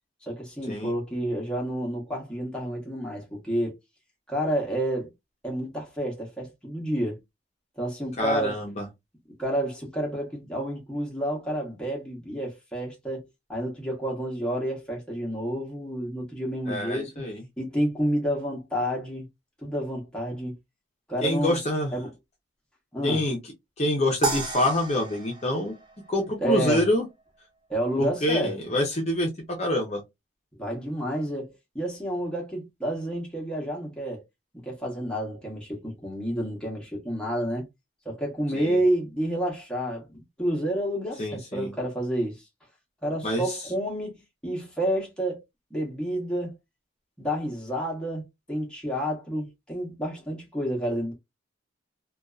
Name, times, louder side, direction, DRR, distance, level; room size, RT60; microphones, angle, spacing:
voice 1, 0.2-3.7 4.3-5.1 5.4-7.2 7.8-8.6 9.4-13.2 13.5-17.1 17.6-19.3 19.6-20.6 21.1-21.6 21.9-22.1 22.9-23.2 26.4-26.8 27.7-28.5 30.6-34.2 34.5-37.7 38.0-42.4 43.0-45.4 45.7-46.5 47.2-51.1, right 1 dB, 5° left, 0.8 m, -29 dB
voice 2, 8.2-8.8 16.7-17.4 21.2-21.9 23.0-23.4 23.8-25.7 26.1-27.0 28.0-30.0 38.5-38.8 41.2-41.7 43.2-43.6, left 1 dB, 35° left, 0.6 m, -26 dB
sound 1, 24.2-26.6, right 3 dB, 25° right, 0.4 m, -33 dB
2.6 x 2.3 x 2.2 m
head